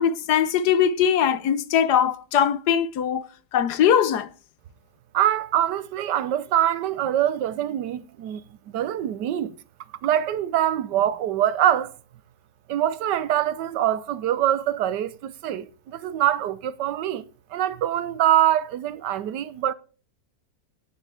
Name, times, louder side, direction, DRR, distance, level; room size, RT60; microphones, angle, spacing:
voice 1, 0.0-3.3 3.5-4.3, left 8 dB, 75° left, 1.3 m, -21 dB
voice 2, 5.1-8.4 8.7-9.5 10.0-11.9 12.7-19.7, right 11 dB, 85° right, 1.4 m, -24 dB
18.5 x 6.4 x 3.4 m
omnidirectional pair, 1.8 m